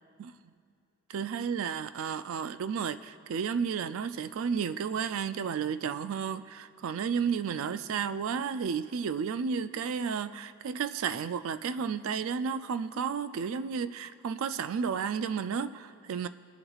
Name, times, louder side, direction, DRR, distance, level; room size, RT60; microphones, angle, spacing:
voice 1, 1.1-16.3, right 6 dB, 65° right, 13 dB, 0.3 m, -32 dB
22.5 x 7.8 x 2.4 m, 2.4 s
head